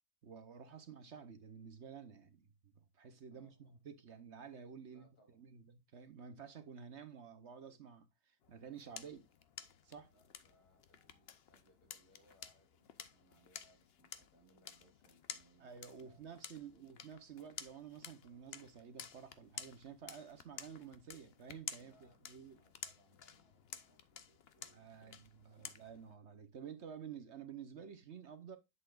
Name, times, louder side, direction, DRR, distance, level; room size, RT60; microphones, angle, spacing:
voice 1, 0.2-5.1 5.3-9.3 9.8-10.1 15.6-22.6 24.7-28.6, right 7 dB, 55° right, 1.1 m, -52 dB
voice 2, 3.3-3.8 4.8-5.5 10.1-16.3 16.7-16.9 21.8-25.8, right 1 dB, 85° left, 3.7 m, -71 dB
sound 1, 8.4-26.1, left 7 dB, 50° left, 0.9 m, -53 dB
8.3 x 7.6 x 2.4 m
omnidirectional pair, 1.6 m